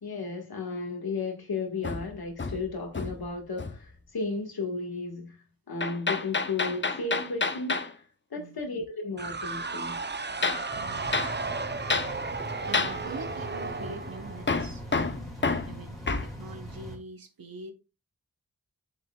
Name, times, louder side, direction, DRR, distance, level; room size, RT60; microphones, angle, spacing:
voice 1, 0.0-5.4 5.7-8.0 8.3-10.0, left 3 dB, 90° left, 1.8 m, -34 dB
Hammer, 1.8-3.3 3.6-3.9 5.8-7.9 10.4-10.7 11.1-11.4 11.9-12.1 12.7-13.0 14.5-16.3, left 4 dB, 30° left, 0.8 m, -29 dB
sound 1, 9.2-14.9, right 4 dB, 30° right, 0.7 m, -35 dB
sound 2, 10.7-17.0, equal, ahead, 3.1 m, -42 dB
voice 2, 10.7-11.4 12.2-14.8 15.6-17.7, right 3 dB, 70° right, 1.3 m, -44 dB
6.7 x 6.5 x 2.4 m
wide cardioid pair, 70°, 36 cm